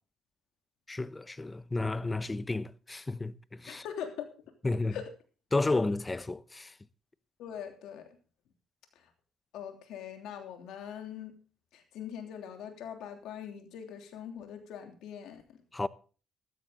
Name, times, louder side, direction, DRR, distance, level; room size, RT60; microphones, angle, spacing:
voice 1, 0.9-3.8 4.6-5.0 5.5-6.7 15.7-15.9, left 2 dB, 20° left, 0.8 m, -32 dB
voice 2, 3.7-4.3 4.9-5.1 7.4-8.1 8.9-9.1 9.5-11.3 11.7-15.6, left 8 dB, 85° left, 3.1 m, -42 dB
15.0 x 13.0 x 3.9 m
cardioid pair, 90°, 0 cm